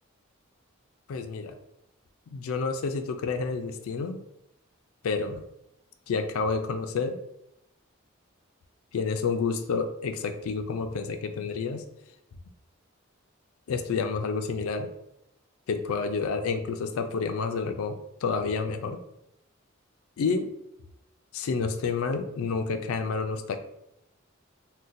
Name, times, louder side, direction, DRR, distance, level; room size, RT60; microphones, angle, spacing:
voice 1, 1.1-1.6 2.3-4.2 5.0-5.4 6.1-7.2 8.9-11.8 13.7-14.9 15.7-19.0 20.2-20.5 21.3-23.6, left 4 dB, 90° left, 7 dB, 0.4 m, -29 dB
3.9 x 2.2 x 2.5 m, 0.81 s
head